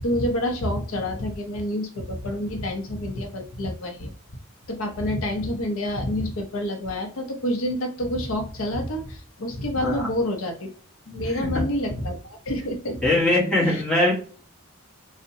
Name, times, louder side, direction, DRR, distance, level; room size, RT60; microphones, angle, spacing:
voice 1, 0.0-4.1 4.7-10.7 11.1-13.0 13.6-13.8, left 1 dB, 75° left, 4 dB, 0.6 m, -28 dB
voice 2, 13.0-14.1, left 1 dB, 5° left, -6 dB, 0.9 m, -21 dB
2.6 x 2.1 x 2.6 m, 0.41 s
head